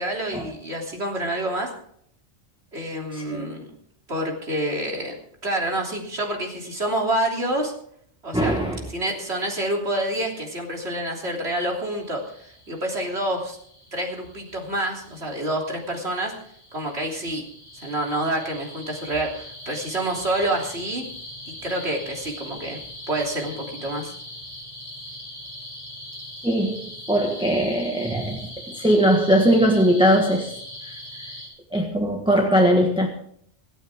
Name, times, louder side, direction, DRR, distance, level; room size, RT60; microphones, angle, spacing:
voice 1, 0.0-1.7 2.7-3.7 4.1-5.2 5.4-7.7 8.2-8.5 8.9-13.6 13.9-16.3 16.7-17.4 17.7-21.1 21.5-22.8 23.1-24.1, right 1 dB, 65° right, 0 dB, 3.6 m, -27 dB
voice 2, 3.1-3.5 8.3-8.8 26.4-26.8 27.1-30.5 30.8-30.9 31.7-33.1, equal, 5° right, 1 dB, 1.5 m, -20 dB
sound 1, 11.5-31.5, left 1 dB, 20° left, 6.2 m, -41 dB
26.5 x 9.2 x 3.6 m, 0.66 s
omnidirectional pair, 1.2 m